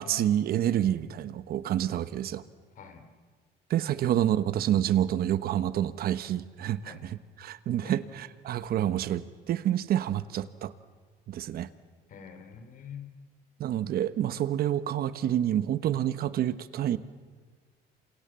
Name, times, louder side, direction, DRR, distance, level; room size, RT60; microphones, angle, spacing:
voice 1, 0.0-2.4 3.7-10.7 11.3-11.7 13.6-17.0, right 11 dB, 65° right, 13 dB, 1.2 m, -28 dB
voice 2, 2.8-3.1 4.0-4.1 6.8-7.1 7.8-8.0 12.1-13.1, left 6 dB, 55° left, 8 dB, 3.7 m, -46 dB
28.5 x 26.0 x 7.7 m, 1.5 s
cardioid pair, 110°, 17 cm